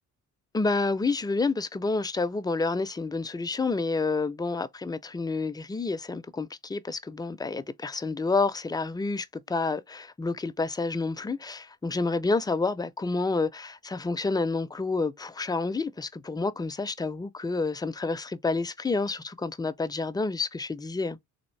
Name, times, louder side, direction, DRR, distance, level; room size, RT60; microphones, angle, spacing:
voice 1, 0.5-21.2, left 3 dB, 15° left, 0.3 m, -29 dB
3.5 x 2.4 x 3.1 m
cardioid pair, 90°, 30 cm